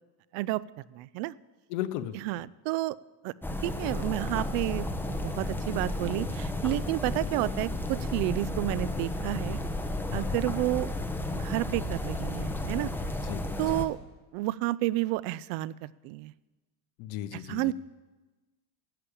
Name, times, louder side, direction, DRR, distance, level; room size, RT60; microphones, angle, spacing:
voice 1, 0.9-1.3 2.1-3.0 3.2-3.3 3.6-9.6 10.1-10.9 11.3-12.9 13.6-14.0 14.3-16.3 17.3-17.7, right 18 dB, 70° right, 21 dB, 0.6 m, -31 dB
voice 2, 1.7-2.2 10.1-10.4 13.2-13.8 17.0-17.7, left 12 dB, 70° left, 11 dB, 1.0 m, -36 dB
sound 1, 3.4-13.9, left 1 dB, 5° left, 0.9 m, -33 dB
12.0 x 8.5 x 8.5 m, 1.2 s
supercardioid pair, 115°, 50 cm